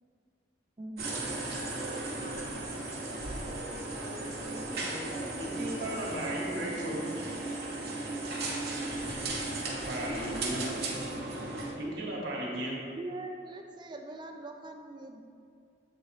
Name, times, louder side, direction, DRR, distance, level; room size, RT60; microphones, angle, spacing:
voice 1, 0.8-1.1 9.6-9.9 13.0-15.2, right 2 dB, 25° right, 4 dB, 0.4 m, -42 dB
sound 1, 1.0-11.7, right 2 dB, 60° right, 1.0 m, -36 dB
voice 2, 4.0-7.0, equal, 15° left, -2 dB, 0.7 m, -47 dB
voice 3, 5.1-7.0 9.8-10.6 11.8-12.8, right 1 dB, 80° right, -4 dB, 1.2 m, -36 dB
7.9 x 3.8 x 3.2 m, 2.5 s
head